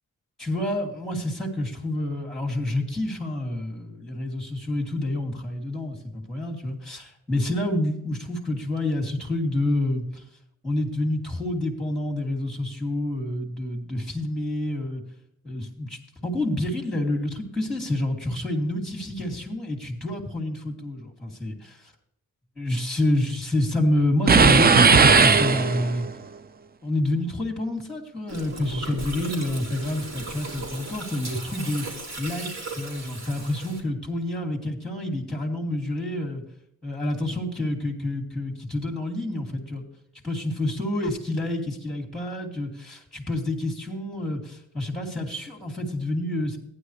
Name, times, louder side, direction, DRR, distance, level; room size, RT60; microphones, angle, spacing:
voice 1, 0.4-10.2 10.6-15.0 15.4-21.9 22.6-26.1 26.8-36.4 36.8-39.8 40.2-46.6, left 1 dB, ahead, 0 dB, 2.6 m, -28 dB
sound 1, 24.3-26.1, right 5 dB, 30° right, 0.5 m, -16 dB
Gurgling, 28.3-33.8, right 2 dB, 60° right, 3.3 m, -37 dB
15.0 x 10.0 x 3.2 m, 0.74 s
cardioid pair, 95°, 31 cm